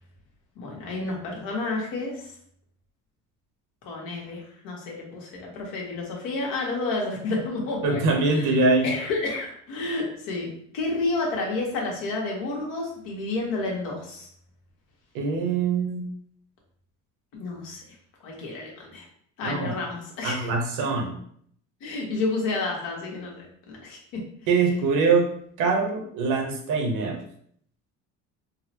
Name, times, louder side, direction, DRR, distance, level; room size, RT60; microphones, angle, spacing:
voice 1, 0.6-2.3 3.8-8.6 8.8-10.5 10.7-14.3 17.3-17.8 18.2-19.0 19.4-20.5 21.8-24.2, left 3 dB, 80° left, -2 dB, 1.2 m, -30 dB
voice 2, 7.8-8.9 15.1-16.1 19.4-19.8 20.2-21.2 24.5-25.3 25.6-27.2, right 4 dB, 65° right, 2 dB, 0.9 m, -23 dB
3.9 x 2.0 x 2.9 m, 0.64 s
cardioid pair, 105°, 33 cm